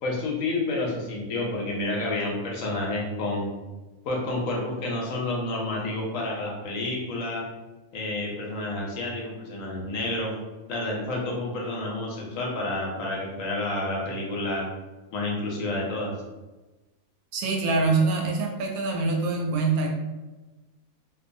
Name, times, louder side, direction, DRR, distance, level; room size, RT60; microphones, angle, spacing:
voice 1, 0.0-3.5 4.0-7.4 7.9-10.3 10.7-14.7 15.1-16.1, left 2 dB, 70° left, -2 dB, 0.9 m, -29 dB
voice 2, 17.3-19.9, right 3 dB, 80° right, 1 dB, 1.1 m, -24 dB
2.6 x 2.2 x 2.5 m, 1.1 s
omnidirectional pair, 1.5 m